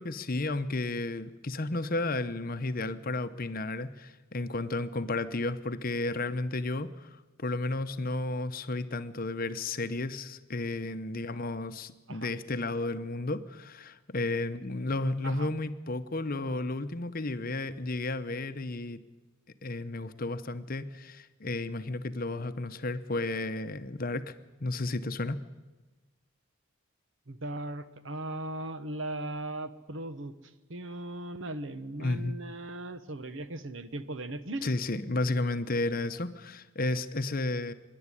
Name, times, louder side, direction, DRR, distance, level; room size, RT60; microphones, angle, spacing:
voice 1, 0.0-19.0 19.6-24.3 24.6-25.4 32.0-32.4 34.6-37.7, left 2 dB, 40° left, 11 dB, 0.8 m, -33 dB
voice 2, 27.3-30.3 30.7-34.7, right 1 dB, 60° right, 12 dB, 1.1 m, -38 dB
24.5 x 11.0 x 9.8 m, 1.2 s
head